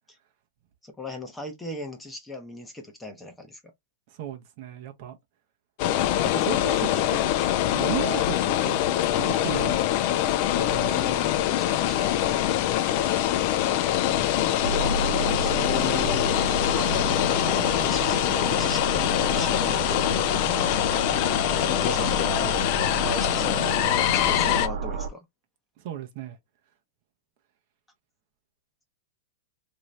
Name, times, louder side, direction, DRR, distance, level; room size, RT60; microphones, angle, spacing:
voice 1, 0.8-3.7 10.8-12.2 15.0-16.4 16.8-17.3 17.7-20.1 21.5-22.6 22.9-25.2, left 2 dB, 5° left, 0.7 m, -38 dB
voice 2, 4.1-5.2 6.3-7.2 7.7-10.0 10.6-11.2 25.8-26.4, right 10 dB, 45° right, 0.7 m, -35 dB
sound 1, 5.8-24.7, left 12 dB, 45° left, 0.4 m, -24 dB
sound 2, 14.6-25.1, right 5 dB, 60° right, 1.1 m, -32 dB
3.0 x 2.6 x 3.1 m
hypercardioid pair, 150°, 0 cm